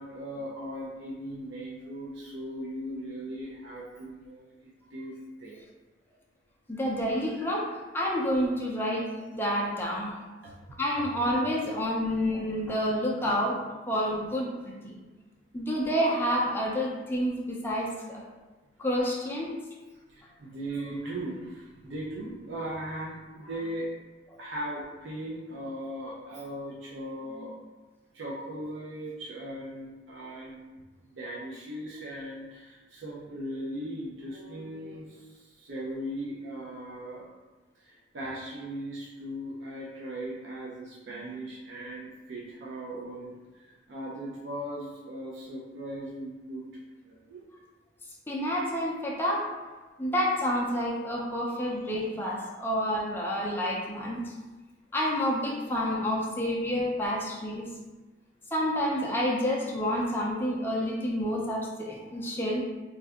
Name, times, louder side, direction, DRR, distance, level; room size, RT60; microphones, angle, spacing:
voice 1, 0.0-5.6 10.4-10.5 20.1-23.9 24.4-27.8 28.1-30.7 31.0-37.3 37.8-46.6 47.0-47.4, right 1 dB, 80° right, -5 dB, 0.5 m, -38 dB
voice 2, 6.7-10.1 10.8-13.6 13.9-15.0 15.5-18.2 18.8-19.5 48.3-49.5 50.0-54.3 54.9-57.7 58.5-62.7, equal, 10° left, -4 dB, 0.4 m, -29 dB
2.6 x 2.3 x 3.4 m, 1.2 s
head